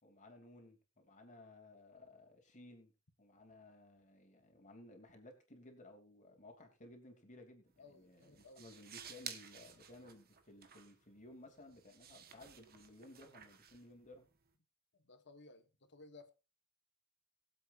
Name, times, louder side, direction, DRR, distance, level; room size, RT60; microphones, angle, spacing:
voice 1, 0.0-2.9 3.2-14.3, left 1 dB, 35° left, 3.0 m, -58 dB
sound 1, 7.7-14.5, right 8 dB, 45° right, 1.4 m, -54 dB
voice 2, 7.8-8.7 15.1-16.3, left 3 dB, 50° left, 1.5 m, -59 dB
22.5 x 7.9 x 2.6 m
head